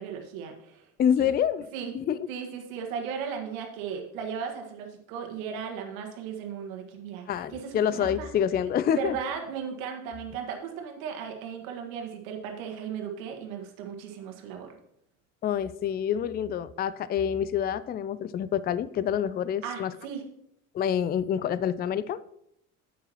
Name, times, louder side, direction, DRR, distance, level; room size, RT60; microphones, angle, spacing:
voice 1, 0.0-0.9 1.2-1.3 1.7-1.9 2.3-8.3 8.9-14.7 19.6-20.2, right 7 dB, 75° right, 3 dB, 1.7 m, -36 dB
voice 2, 1.0-1.7 1.9-2.2 7.3-9.2 15.4-19.9 20.7-22.2, left 9 dB, 25° left, 17 dB, 0.4 m, -27 dB
9.8 x 8.3 x 3.0 m, 0.74 s
hypercardioid pair, 65°, 41 cm